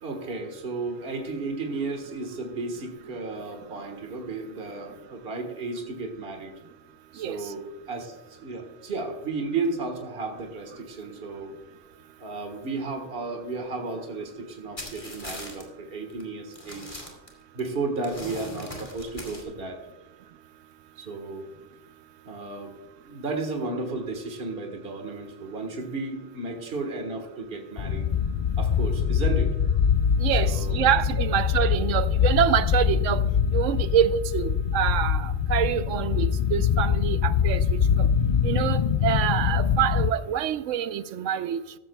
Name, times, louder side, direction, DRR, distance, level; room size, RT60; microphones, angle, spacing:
voice 1, 0.0-6.5 7.1-11.5 12.2-17.0 17.5-19.8 20.9-21.5 22.2-22.7 23.1-28.1 28.6-29.6 30.3-30.8, right 3 dB, 50° right, 1.6 m, -33 dB
sound 1, 14.8-15.6 16.1-16.2 16.5-17.7 18.0-19.4, left 1 dB, 25° left, 2.6 m, -40 dB
sound 2, 27.8-40.1, left 7 dB, 65° left, 0.4 m, -24 dB
voice 2, 30.2-33.2 33.5-38.1 38.4-41.8, right 10 dB, 85° right, 1.0 m, -26 dB
14.5 x 13.5 x 2.3 m
omnidirectional pair, 1.3 m